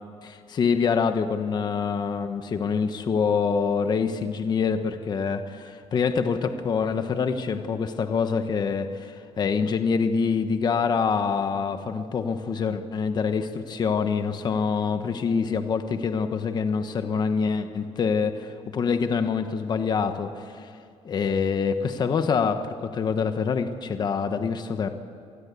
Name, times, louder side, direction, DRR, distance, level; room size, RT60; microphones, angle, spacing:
voice 1, 0.2-20.7 21.0-24.9, left 5 dB, 40° left, 8 dB, 1.2 m, -25 dB
27.0 x 20.0 x 8.4 m, 2.5 s
cardioid pair, 160°, 11 cm